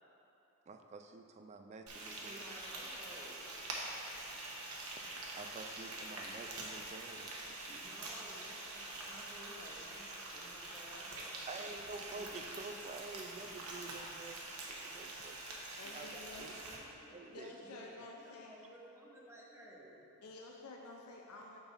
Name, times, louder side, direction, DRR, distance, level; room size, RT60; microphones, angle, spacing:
voice 1, 0.7-2.4 5.4-7.8 11.5-15.4 15.8-16.1 16.4-16.5 17.1-17.5, right 3 dB, 30° right, 5 dB, 0.3 m, -49 dB
Frying (food), 1.9-16.8, right 2 dB, 90° right, 0.9 m, -45 dB
voice 2, 2.2-3.5 7.6-12.3 16.1-20.1, right 1 dB, 15° right, -5 dB, 0.9 m, -56 dB
voice 3, 15.8-16.5 17.3-18.7 20.2-21.6, left 3 dB, 85° left, 0 dB, 0.5 m, -51 dB
6.0 x 5.4 x 4.0 m, 2.9 s
head